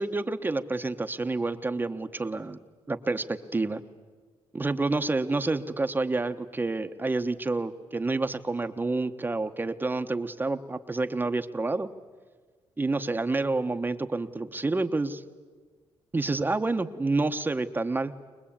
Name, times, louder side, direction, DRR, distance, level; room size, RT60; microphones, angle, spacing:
voice 1, 0.0-2.6 2.9-3.8 4.5-11.9 12.8-15.2 16.1-18.1, right 3 dB, 20° right, 8 dB, 1.0 m, -28 dB
23.5 x 20.5 x 8.7 m, 1.4 s
cardioid pair, 110°, 10 cm